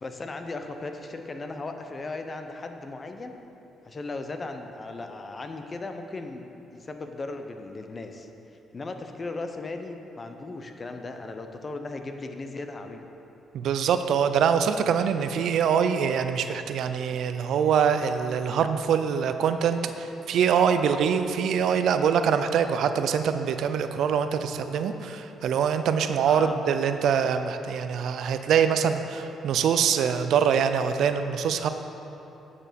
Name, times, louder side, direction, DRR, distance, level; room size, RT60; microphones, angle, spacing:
voice 1, 0.0-3.3 3.8-6.4 6.7-8.3 8.7-13.1 26.3-26.6, left 3 dB, 35° left, 6 dB, 0.7 m, -37 dB
voice 2, 13.5-31.7, right 7 dB, 75° right, 9 dB, 0.4 m, -24 dB
9.0 x 6.8 x 5.2 m, 3.0 s
cardioid pair, 90°, 0 cm